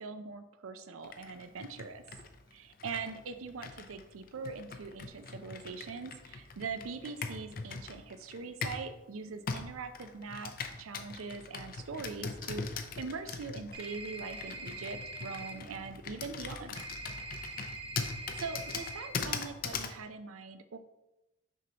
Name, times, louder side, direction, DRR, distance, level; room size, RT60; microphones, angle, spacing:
voice 1, 0.0-2.0 2.5-10.5 10.8-16.8 18.0-18.1 18.4-20.8, right 4 dB, 90° right, 10 dB, 0.5 m, -42 dB
Computer keyboard, 1.0-8.9 9.5-20.0, left 5 dB, 45° left, 0.5 m, -41 dB
sound 1, 13.7-15.5 16.8-19.1, right 2 dB, 25° right, 0.6 m, -43 dB
6.3 x 5.3 x 2.9 m, 0.96 s
head